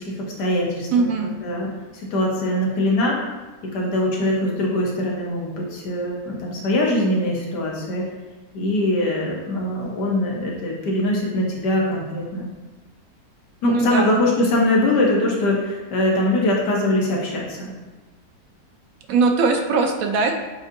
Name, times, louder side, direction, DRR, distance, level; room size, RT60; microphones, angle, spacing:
voice 1, 0.0-1.1 1.4-3.2 3.7-8.1 8.5-12.5 13.6-17.7, left 1 dB, 90° left, -2 dB, 1.6 m, -22 dB
voice 2, 0.9-1.3 13.6-14.2 19.1-20.3, right 4 dB, 70° right, 3 dB, 0.9 m, -20 dB
7.8 x 2.7 x 2.5 m, 1.2 s
omnidirectional pair, 1.7 m